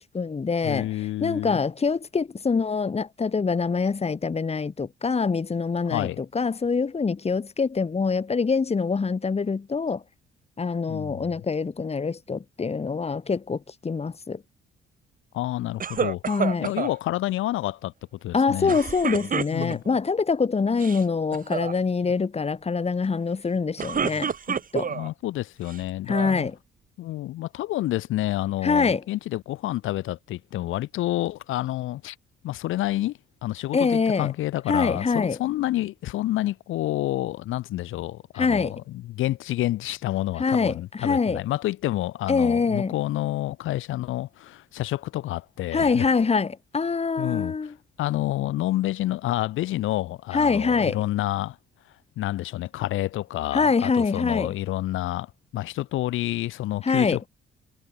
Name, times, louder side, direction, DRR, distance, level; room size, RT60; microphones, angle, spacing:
voice 1, 0.0-0.9 1.2-6.1 6.3-10.0 10.6-14.4 16.3-16.7 18.3-24.9 26.1-26.5 28.6-29.0 33.7-34.3 34.7-35.4 38.4-38.8 40.4-41.4 42.3-42.9 45.7-47.7 50.3-51.0 53.5-54.5 56.8-57.2, left 5 dB, 30° left, 3.1 m, -24 dB
voice 2, 0.6-1.6 5.8-6.2 10.9-11.3 15.3-17.9 18.2-18.8 19.5-19.8 24.9-26.5 27.0-32.2 32.4-46.1 47.2-47.7 48.0-51.6 52.2-57.3, left 15 dB, 90° left, 3.6 m, -29 dB
sound 1, 15.8-16.9 18.7-20.0 20.7-21.0 21.3-21.7 23.5-25.1 25.7-26.4, right 7 dB, 45° right, 2.7 m, -29 dB
cardioid pair, 90°, 20 cm